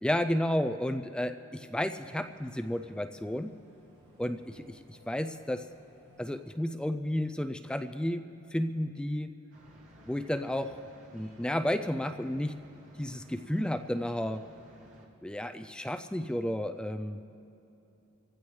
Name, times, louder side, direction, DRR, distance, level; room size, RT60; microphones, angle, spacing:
voice 1, 0.0-3.5 4.2-5.7 6.2-9.3 10.1-10.8 11.1-12.5 13.0-14.4 15.2-17.2, left 1 dB, 5° left, 8 dB, 0.3 m, -32 dB
sound 1, 1.4-6.4, equal, 35° right, 4.0 m, -61 dB
sound 2, 9.5-15.1, right 1 dB, 80° right, 2.6 m, -56 dB
26.0 x 15.5 x 3.2 m, 3.0 s
head